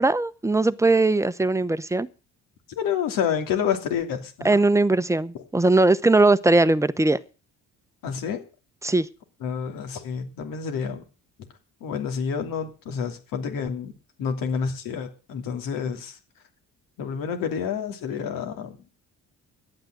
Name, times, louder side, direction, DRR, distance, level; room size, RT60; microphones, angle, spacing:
voice 1, 0.0-2.1 4.4-7.2 8.8-9.1, right 2 dB, 10° right, 0.7 m, -20 dB
voice 2, 2.7-4.6 8.0-8.4 9.4-11.0 11.8-13.9 14.2-16.2 17.0-18.8, left 7 dB, 85° left, 2.9 m, -29 dB
12.0 x 8.9 x 7.8 m
cardioid pair, 105°, 33 cm